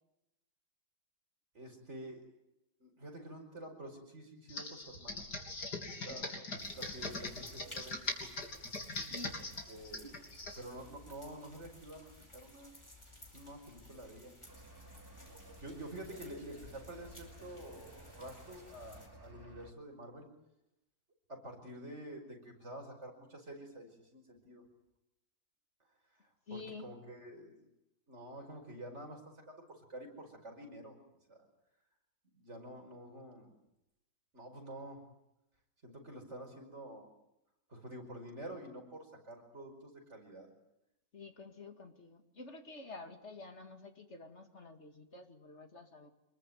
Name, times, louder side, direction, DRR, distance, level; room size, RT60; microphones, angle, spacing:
voice 1, 1.5-2.2 2.8-5.2 5.9-6.4 6.7-8.3 9.4-10.2 10.6-12.7 13.3-14.3 15.6-20.3 21.3-24.6 26.5-27.6 28.1-31.0 31.3-31.4 32.3-33.5 34.3-35.0 35.8-37.1 37.7-40.5, right 1 dB, 40° right, 2 dB, 5.6 m, -49 dB
Computer keyboard, 4.5-10.6, left 2 dB, 65° left, 4.1 m, -41 dB
sound 1, 6.6-19.1, left 1 dB, 15° left, 4.5 m, -57 dB
voice 2, 9.1-9.4 26.5-27.0 41.1-46.1, left 3 dB, 40° left, 6 dB, 2.5 m, -49 dB
sound 2, 14.5-19.7, right 1 dB, 15° right, 2.5 m, -55 dB
26.0 x 21.5 x 9.3 m, 0.89 s
omnidirectional pair, 1.8 m